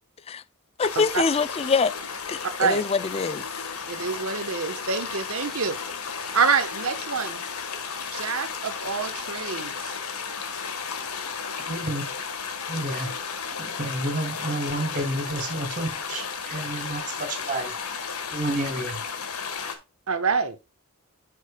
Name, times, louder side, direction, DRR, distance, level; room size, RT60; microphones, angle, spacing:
sound 1, 0.8-19.8, left 6 dB, 80° left, 1.4 m, -34 dB
voice 1, 0.8-1.9 2.3-3.4, left 5 dB, 25° left, 0.4 m, -24 dB
voice 2, 3.9-5.8 6.3-7.4 8.1-10.0 20.1-20.6, right 5 dB, 70° right, 1.1 m, -26 dB
voice 3, 11.7-12.0 12.7-13.1 13.6-17.7 18.3-19.0, right 1 dB, 35° right, 2.7 m, -30 dB
10.0 x 6.4 x 2.2 m
head